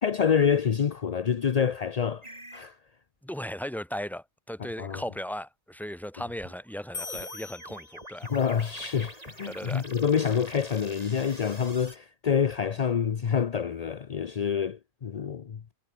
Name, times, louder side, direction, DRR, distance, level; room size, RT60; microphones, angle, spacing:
voice 1, 0.0-2.2 2.5-2.8 4.8-5.0 8.3-15.6, left 7 dB, 45° left, 0.5 m, -27 dB
sound 1, 2.2-2.7 6.4-12.0, right 1 dB, 25° right, 6.4 m, -46 dB
voice 2, 3.2-8.3 9.4-9.9, equal, ahead, 2.0 m, -37 dB
sound 2, 6.9-8.6, left 4 dB, 70° left, 2.9 m, -41 dB
omnidirectional pair, 1.4 m